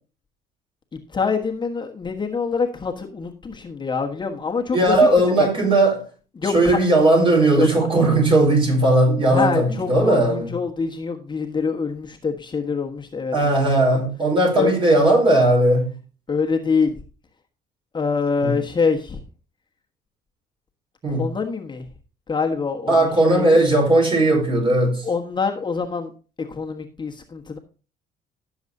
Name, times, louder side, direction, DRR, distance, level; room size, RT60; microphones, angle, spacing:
voice 1, 0.9-5.5 6.4-6.8 7.6-7.9 9.3-14.0 14.6-14.7 16.3-17.0 17.9-19.2 21.1-21.9 22.3-23.6 25.0-26.1 26.4-27.6, left 5 dB, 25° left, 1.3 m, -25 dB
voice 2, 4.7-6.1 6.4-10.5 13.3-15.9 18.4-18.5 21.0-21.3 22.9-25.1, right 1 dB, 30° right, 4.7 m, -17 dB
16.0 x 7.2 x 2.7 m
cardioid pair, 110°, 17 cm